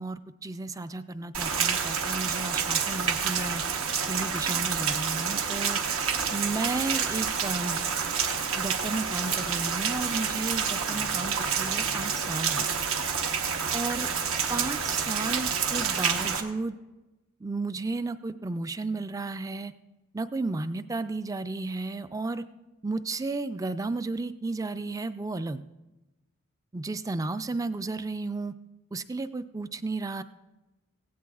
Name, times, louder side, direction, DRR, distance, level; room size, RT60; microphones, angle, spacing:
voice 1, 0.0-3.6 4.0-5.8 6.3-7.8 8.5-12.6 13.7-14.1 14.5-16.8 17.4-19.7 20.1-22.4 22.8-25.6 26.7-28.5 28.9-30.2, right 3 dB, 15° right, 12 dB, 0.3 m, -33 dB
Rain, 1.3-16.4, right 6 dB, 75° right, 1.1 m, -28 dB
17.0 x 16.0 x 2.4 m, 1.1 s
head